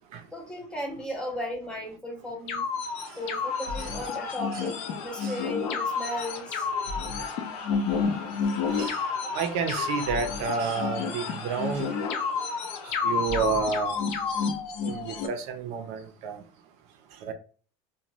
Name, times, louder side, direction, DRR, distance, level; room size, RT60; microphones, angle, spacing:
voice 1, 0.3-2.7 3.2-6.7 9.2-9.4, left 1 dB, 5° left, 0.5 m, -36 dB
sound 1, 2.5-15.3, left 5 dB, 50° left, 0.6 m, -30 dB
sound 2, 2.7-13.7, left 5 dB, 75° left, 1.0 m, -41 dB
voice 2, 9.3-11.9 13.0-14.0 14.8-16.4 17.2-17.3, right 5 dB, 50° right, 0.5 m, -30 dB
2.5 x 2.1 x 3.0 m
cardioid pair, 170°, 14 cm